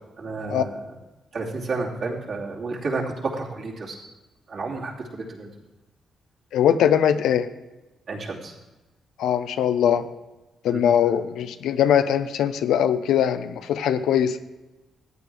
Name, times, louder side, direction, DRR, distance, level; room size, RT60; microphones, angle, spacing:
voice 1, 0.2-0.8 1.3-4.0 4.5-5.5 8.1-8.5 10.7-10.8, right 3 dB, 65° right, -3 dB, 2.9 m, -31 dB
voice 2, 6.5-7.5 9.2-10.1 10.6-14.4, left 9 dB, 80° left, 10 dB, 0.7 m, -21 dB
14.5 x 9.3 x 3.4 m, 1.1 s
supercardioid pair, 60°, 0 cm